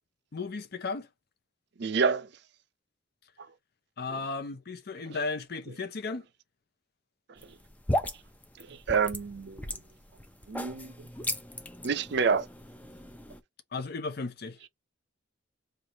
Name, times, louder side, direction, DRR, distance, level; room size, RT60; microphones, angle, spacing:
voice 1, 0.3-1.1 4.0-6.2 13.7-14.6, left 4 dB, 55° left, 0.5 m, -35 dB
voice 2, 1.8-2.3 8.7-9.6 10.5-10.9 11.8-12.5, right 5 dB, 55° right, 0.5 m, -27 dB
sound 1, 7.4-13.4, left 1 dB, 10° left, 0.4 m, -36 dB
3.2 x 2.5 x 4.1 m
head